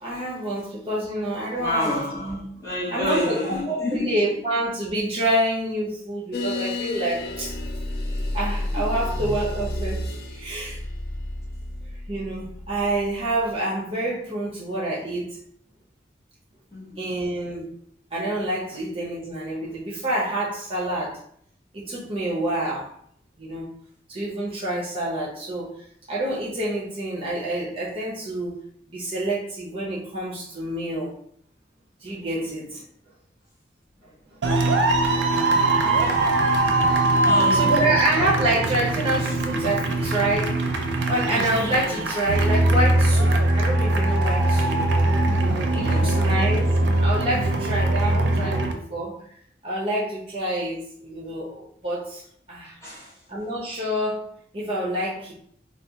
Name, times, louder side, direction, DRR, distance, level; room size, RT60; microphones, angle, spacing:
voice 1, 0.0-2.4 2.9-7.5 8.3-10.8 12.1-15.4 17.0-17.7 18.1-21.2 21.7-22.9 23.4-23.7 24.1-28.6 28.9-31.1 32.0-32.8 34.3-34.4 35.6-36.0 37.5-40.8 41.1-44.8 45.4-49.2 49.6-52.2 52.5-52.7 53.3-54.3 54.5-55.3, right 1 dB, 30° right, 0.8 m, -27 dB
voice 2, 1.6-4.4 8.7-8.9 16.7-17.1 32.4-32.5 35.8-36.6 37.2-37.9 45.8-46.5 52.8-53.2, left 1 dB, 15° left, 1.0 m, -30 dB
sound 1, 6.3-13.5, left 1 dB, 55° left, 0.4 m, -31 dB
sound 2, 34.4-48.7, right 2 dB, 90° right, 0.5 m, -21 dB
3.2 x 2.4 x 2.8 m
head